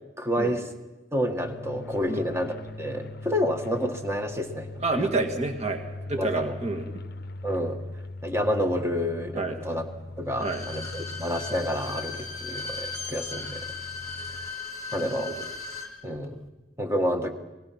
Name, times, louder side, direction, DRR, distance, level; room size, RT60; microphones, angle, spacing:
voice 1, 0.2-0.7 1.1-5.1 6.2-6.5 7.4-7.8 8.2-9.9 10.2-13.6 14.9-15.3 16.0-16.4 16.8-17.3, equal, 15° right, 6 dB, 1.5 m, -29 dB
sound 1, 1.4-14.5, left 2 dB, 50° left, 0.7 m, -40 dB
voice 2, 4.8-7.0 9.3-9.6 10.4-10.7 15.0-15.4, right 3 dB, 35° right, 4 dB, 2.0 m, -29 dB
Bowed string instrument, 10.3-15.9 16.2-16.3, left 4 dB, 15° left, 2.2 m, -37 dB
30.0 x 21.0 x 5.9 m, 1.1 s
head